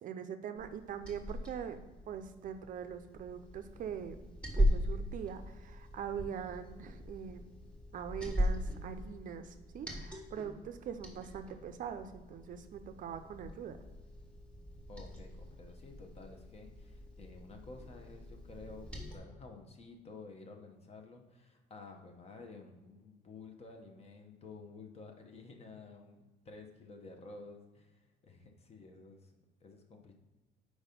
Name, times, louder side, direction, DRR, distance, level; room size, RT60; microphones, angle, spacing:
voice 1, 0.0-1.8 2.1-7.5 7.9-13.8, right 8 dB, 50° right, 8 dB, 0.5 m, -43 dB
Liquid, 0.6-19.2, equal, 5° left, 1.4 m, -39 dB
voice 2, 14.9-30.2, left 3 dB, 35° left, 4 dB, 1.0 m, -52 dB
4.8 x 4.1 x 5.2 m, 1.2 s
cardioid pair, 110°, 17 cm